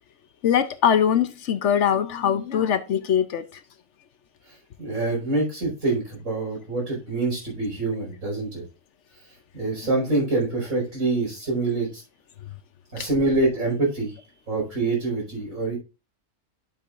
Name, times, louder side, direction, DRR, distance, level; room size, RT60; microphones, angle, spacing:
voice 1, 0.4-3.4 13.0-13.1, left 8 dB, 65° left, 11 dB, 0.9 m, -22 dB
voice 2, 4.8-8.6 9.5-12.0 12.9-14.2 14.5-15.8, right 2 dB, 80° right, -2 dB, 5.3 m, -25 dB
11.0 x 6.5 x 2.5 m, 0.30 s
omnidirectional pair, 1.4 m